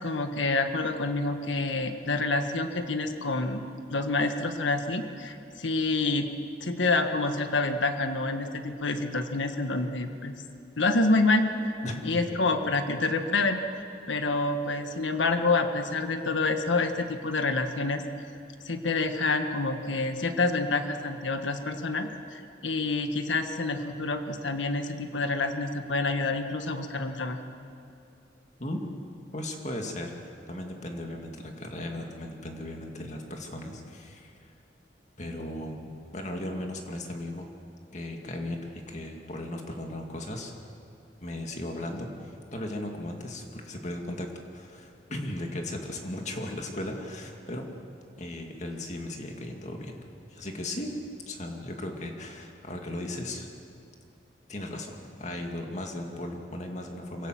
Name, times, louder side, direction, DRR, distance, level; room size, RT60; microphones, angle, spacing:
voice 1, 0.0-3.6 3.9-6.3 6.6-10.3 10.8-11.7 12.0-13.6 14.1-18.0 18.6-27.4, left 3 dB, 85° left, 6 dB, 1.5 m, -27 dB
voice 2, 11.8-12.2 28.6-28.9 29.3-34.5 35.2-35.8 36.1-37.5 37.9-40.5 41.2-47.7 48.2-50.0 50.3-50.9 51.3-53.5 54.5-57.3, left 1 dB, 40° left, 2 dB, 2.3 m, -36 dB
25.5 x 17.5 x 7.7 m, 2.6 s
head